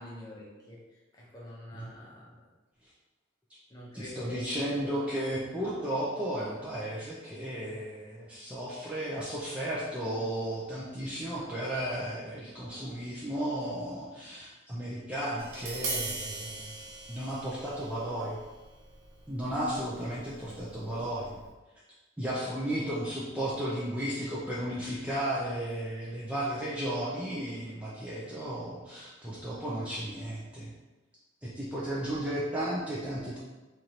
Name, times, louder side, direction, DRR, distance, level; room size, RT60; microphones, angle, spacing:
voice 1, 0.0-2.4 3.7-4.9 20.0-20.2, left 1 dB, 20° left, -5 dB, 0.8 m, -46 dB
voice 2, 3.9-16.7 17.1-18.4 19.3-21.4 22.2-30.7 31.4-33.4, right 1 dB, 5° right, -8 dB, 0.5 m, -34 dB
Tap, 15.4-21.5, right 3 dB, 80° right, 0.8 m, -41 dB
4.6 x 2.6 x 2.9 m, 1.2 s
head